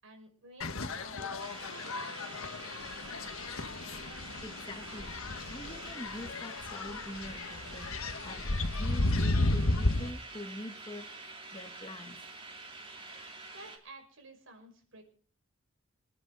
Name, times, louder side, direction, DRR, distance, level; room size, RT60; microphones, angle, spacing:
voice 1, 0.0-2.3 13.5-15.0, right 2 dB, 75° right, 5.6 m, -53 dB
sound 1, 0.6-10.1, left 2 dB, 90° left, 1.4 m, -33 dB
sound 2, 1.4-13.8, right 3 dB, 25° right, 3.0 m, -47 dB
voice 2, 4.4-5.2 5.5-11.1 11.5-12.3, left 1 dB, 20° left, 1.2 m, -45 dB
26.0 x 10.5 x 4.0 m
head